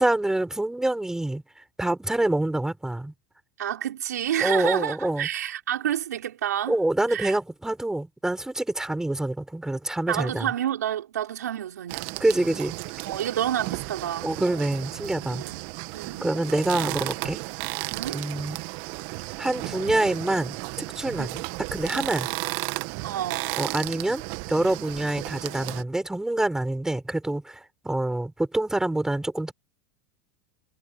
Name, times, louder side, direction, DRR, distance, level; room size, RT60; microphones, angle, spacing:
voice 1, 0.0-1.4 1.8-3.1 4.4-5.3 6.7-10.5 12.2-12.8 14.2-15.4 16.2-17.4 18.1-18.6 19.4-21.4 21.7-22.3 23.6-24.2 24.5-29.5, right 1 dB, 5° right, 5.2 m, -26 dB
voice 2, 3.6-6.7 7.1-7.3 10.1-12.1 13.1-14.4 15.3-15.6 15.9-16.3 17.9-18.2 21.2-21.5 23.0-23.6, right 11 dB, 80° right, 4.7 m, -29 dB
sound 1, 11.9-25.8, right 25 dB, 55° right, 2.1 m, -34 dB
hypercardioid pair, 95°, 9 cm